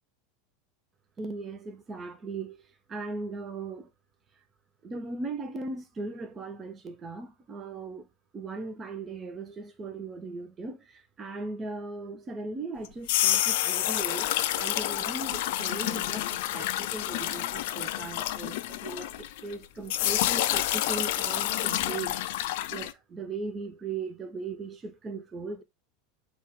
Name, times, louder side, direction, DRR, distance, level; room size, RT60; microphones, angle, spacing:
voice 1, 1.2-3.9 4.8-8.1 8.3-14.3 14.6-25.6, right 3 dB, 25° right, 0.6 m, -38 dB
sound 1, 12.8-19.5 19.9-22.9, left 14 dB, 60° left, 0.3 m, -29 dB
4.3 x 2.5 x 3.4 m
hypercardioid pair, 85°, 0 cm